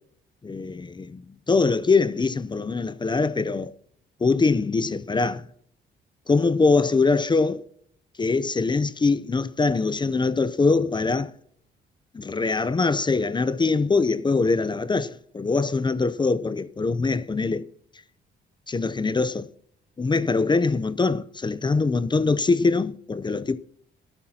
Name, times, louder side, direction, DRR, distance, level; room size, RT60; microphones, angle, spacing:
voice 1, 0.4-1.2 1.5-3.7 4.2-5.4 6.3-7.6 8.2-11.3 12.1-17.6 18.7-19.5 20.0-23.6, left 4 dB, 20° left, 0.6 m, -23 dB
17.5 x 12.5 x 2.9 m
cardioid pair, 90°, 20 cm